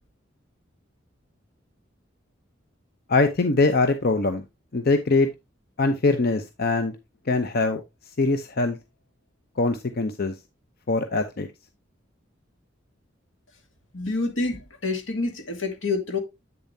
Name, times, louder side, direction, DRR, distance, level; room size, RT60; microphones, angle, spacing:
voice 1, 3.1-4.4 4.7-5.3 5.8-6.9 7.3-7.8 8.2-8.8 9.6-10.3 10.9-11.5, left 3 dB, 55° left, 0.7 m, -22 dB
voice 2, 13.9-16.2, left 3 dB, 85° left, 2.2 m, -27 dB
8.6 x 6.9 x 2.7 m
head